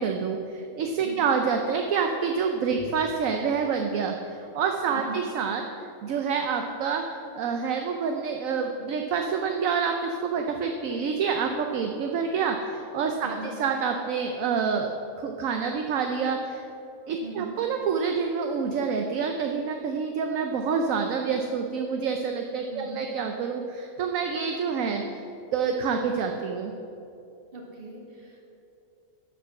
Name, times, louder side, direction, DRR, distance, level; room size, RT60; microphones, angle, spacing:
voice 1, 0.0-5.6 6.0-7.0 7.3-16.6 17.1-25.0 25.5-26.7, right 5 dB, 70° right, 4 dB, 1.0 m, -27 dB
voice 2, 4.9-5.2 13.2-13.5 17.2-17.6 22.7-23.0 27.5-28.4, right 2 dB, 40° right, -2 dB, 2.0 m, -40 dB
11.5 x 5.2 x 7.5 m, 2.7 s
omnidirectional pair, 1.5 m